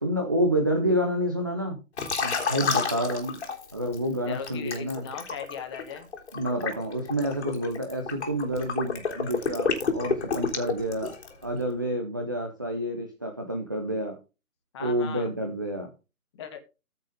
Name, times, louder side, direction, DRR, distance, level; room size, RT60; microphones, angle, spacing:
voice 1, 0.0-1.8 2.2-3.4 3.7-5.1 6.3-11.1 11.4-14.2 14.8-15.9, equal, 15° right, 1 dB, 0.6 m, -28 dB
Liquid, 2.0-4.0 4.4-11.4, left 5 dB, 45° left, 3.6 m, -30 dB
voice 2, 4.2-6.1 14.7-15.3 16.3-16.6, left 7 dB, 20° left, 6 dB, 1.6 m, -38 dB
14.5 x 6.5 x 3.7 m, 0.29 s
figure-of-eight pair, 145°, 45 cm